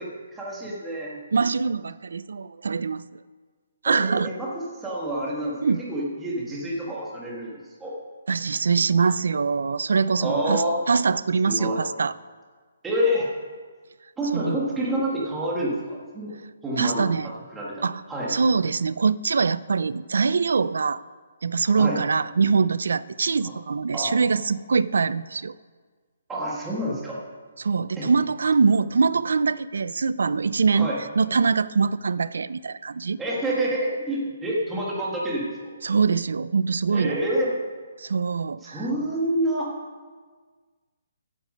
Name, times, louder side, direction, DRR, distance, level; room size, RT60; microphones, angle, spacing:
voice 1, 0.0-1.2 3.9-7.9 10.2-10.8 11.5-11.8 12.8-13.3 14.2-17.1 17.5-18.3 21.7-22.0 23.4-23.5 23.9-24.1 26.3-27.2 28.0-28.1 30.7-31.0 33.2-35.5 36.9-37.5 38.6-39.7, right 1 dB, 5° right, -5 dB, 1.7 m, -28 dB
voice 2, 1.3-3.0 3.8-4.3 5.6-5.8 8.3-12.1 14.3-14.6 16.8-17.3 17.8-18.0 18.3-21.0 21.4-25.5 27.6-33.2 35.8-37.2 38.0-38.8, right 5 dB, 75° right, 18 dB, 0.4 m, -23 dB
15.0 x 8.6 x 5.2 m, 1.5 s
hypercardioid pair, 180°, 0 cm